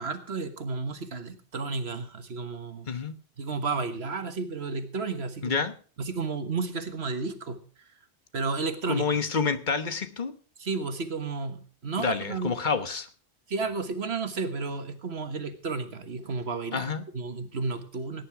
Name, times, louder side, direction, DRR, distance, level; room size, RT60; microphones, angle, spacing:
voice 1, 0.0-2.9 3.4-5.6 6.0-7.6 8.3-9.1 10.6-12.5 13.5-18.3, right 4 dB, 70° right, 9 dB, 1.7 m, -32 dB
voice 2, 5.4-5.7 8.9-10.3 12.0-13.1 16.7-17.0, left 5 dB, 45° left, 11 dB, 1.3 m, -28 dB
17.5 x 9.9 x 4.8 m, 0.41 s
omnidirectional pair, 1.1 m